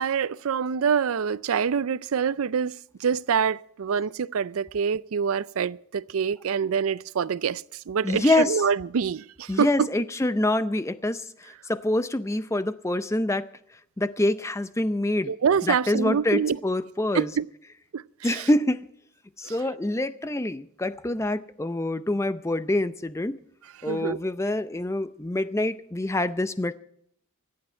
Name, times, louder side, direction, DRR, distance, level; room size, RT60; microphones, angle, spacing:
voice 1, 0.0-2.7 3.0-7.6 7.9-9.9 15.3-16.6 17.1-17.5 17.9-18.0 18.3-18.4 19.4-19.5 23.9-24.2, right 6 dB, 75° right, 0.4 m, -25 dB
voice 2, 8.0-8.6 9.5-13.4 14.0-15.3 15.6-17.3 18.2-18.8 19.4-23.4 23.8-26.7, left 1 dB, 15° left, 0.5 m, -26 dB
25.5 x 8.7 x 4.4 m
head